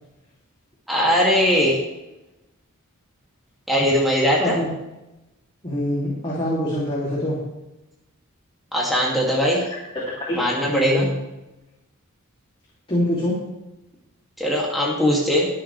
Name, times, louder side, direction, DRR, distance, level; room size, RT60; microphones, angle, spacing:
voice 1, 0.9-1.8 3.7-4.6 8.7-9.6 10.3-11.1 14.4-15.5, equal, ahead, -5 dB, 2.6 m, -20 dB
voice 2, 4.4-4.7 5.6-7.4 10.3-10.4 10.7-11.1 12.9-13.4, left 1 dB, 25° left, -7 dB, 3.0 m, -24 dB
22.5 x 7.5 x 3.4 m, 0.97 s
head